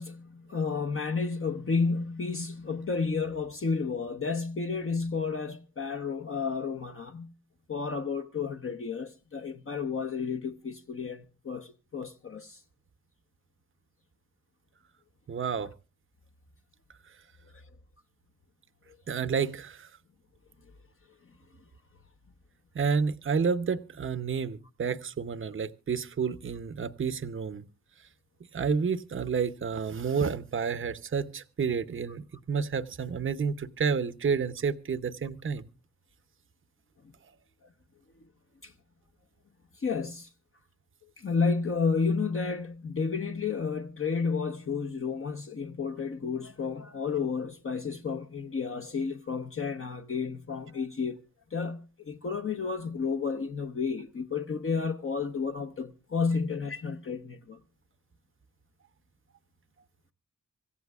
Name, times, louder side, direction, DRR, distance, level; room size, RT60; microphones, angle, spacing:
voice 1, 0.0-7.3 7.7-12.6 38.6-38.7 39.8-40.3 41.2-51.2 51.5-57.6, left 5 dB, 40° left, 0.9 m, -31 dB
voice 2, 15.3-15.7 19.1-19.9 22.7-27.7 28.5-35.7, right 6 dB, 40° right, 0.8 m, -30 dB
25.5 x 15.0 x 2.4 m
cardioid pair, 80°, 32 cm